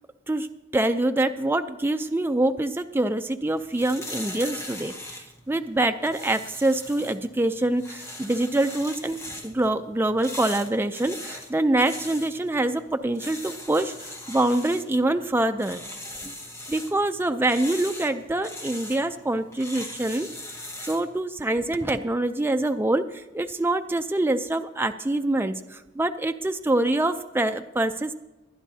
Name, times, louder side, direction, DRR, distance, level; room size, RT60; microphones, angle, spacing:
voice 1, 0.7-13.9 14.3-15.8 16.2-16.3 16.7-20.3 20.8-28.1, right 2 dB, 10° right, 7 dB, 0.4 m, -25 dB
sound 1, 3.5-21.1, left 1 dB, 15° left, 1.3 m, -40 dB
23.0 x 10.0 x 2.8 m, 1.0 s
head